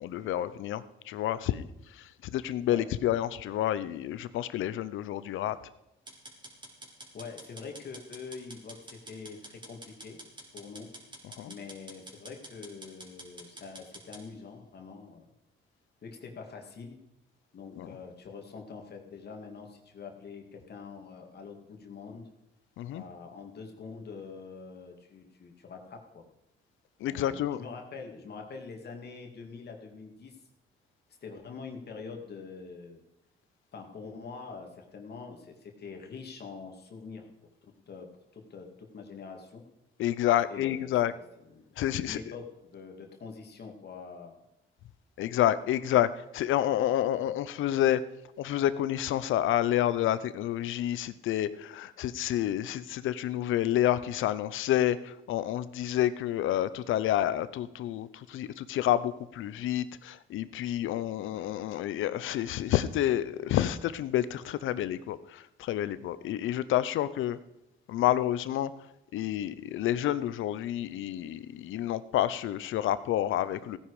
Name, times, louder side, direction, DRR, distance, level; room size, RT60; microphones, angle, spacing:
voice 1, 0.0-5.6 11.4-11.5 17.8-17.9 22.8-23.0 27.0-27.6 40.0-41.1 41.8-42.2 45.2-48.0 48.4-67.4 67.9-68.7 69.1-73.8, left 12 dB, 80° left, 15 dB, 0.8 m, -29 dB
sound 1, 6.1-14.2, right 1 dB, 25° right, 3.8 m, -48 dB
voice 2, 7.1-10.2 10.5-10.9 11.5-15.3 16.0-17.0 17.5-22.3 22.9-26.2 27.1-30.4 31.2-33.0 33.7-37.3 37.9-38.1 38.3-39.7 40.5-41.2 41.5-44.4, left 5 dB, 55° left, 3 dB, 2.4 m, -45 dB
16.0 x 10.0 x 5.0 m, 0.87 s
cardioid pair, 90°, 20 cm